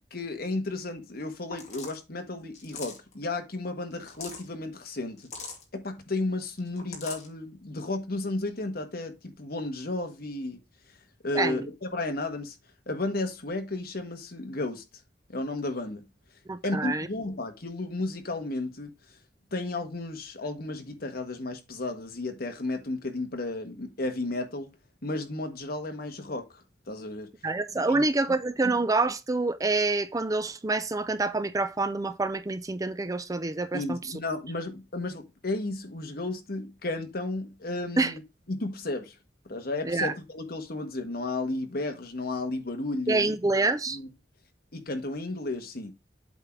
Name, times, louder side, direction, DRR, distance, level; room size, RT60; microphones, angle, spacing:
voice 1, 0.1-5.3 5.7-10.6 11.2-12.5 12.9-14.8 15.3-16.1 16.6-18.9 19.5-24.7 25.0-27.3 27.9-28.0 33.7-38.2 38.5-39.1 39.4-43.3 43.9-44.1 44.7-45.9, left 2 dB, 60° left, 1.5 m, -33 dB
sound 1, 1.2-1.3 1.5-2.0 2.5-3.1 3.9-4.5 5.2-5.6 6.6-7.3, left 4 dB, 40° left, 2.4 m, -41 dB
voice 2, 11.3-11.7 16.5-17.1 27.4-34.1 38.0-38.1 39.8-40.1 43.1-44.0, right 3 dB, 20° right, 0.5 m, -27 dB
8.1 x 3.8 x 4.5 m
head